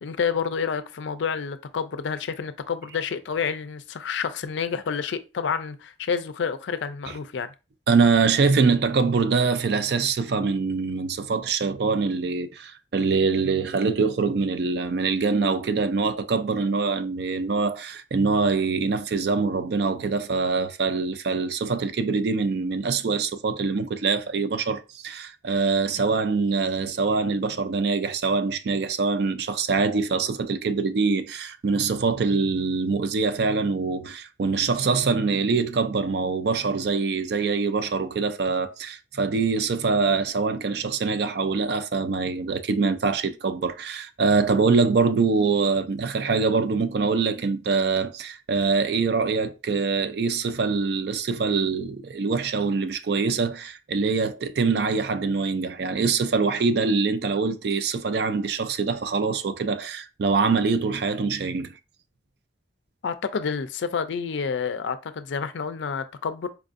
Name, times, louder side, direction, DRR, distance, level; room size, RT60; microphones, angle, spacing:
voice 1, 0.0-7.5 63.0-66.5, left 6 dB, 75° left, 0.4 m, -29 dB
voice 2, 7.9-61.7, right 4 dB, 55° right, 0.3 m, -24 dB
4.6 x 2.5 x 2.4 m
head